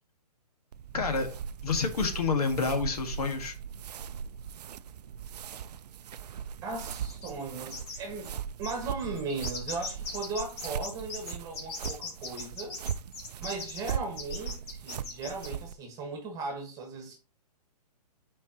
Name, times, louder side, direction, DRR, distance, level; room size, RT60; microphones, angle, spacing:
sound 1, 0.7-15.7, right 8 dB, 80° right, 0.4 m, -39 dB
voice 1, 0.9-1.4 1.6-3.5, left 4 dB, 70° left, 1.7 m, -28 dB
voice 2, 6.6-12.8 13.4-17.2, right 3 dB, 15° right, 1.5 m, -37 dB
sound 2, 7.0-7.4 7.7-8.0 8.2-8.3 8.6-15.5, left 4 dB, 40° left, 2.2 m, -39 dB
8.2 x 4.6 x 2.9 m
hypercardioid pair, 155°, 20 cm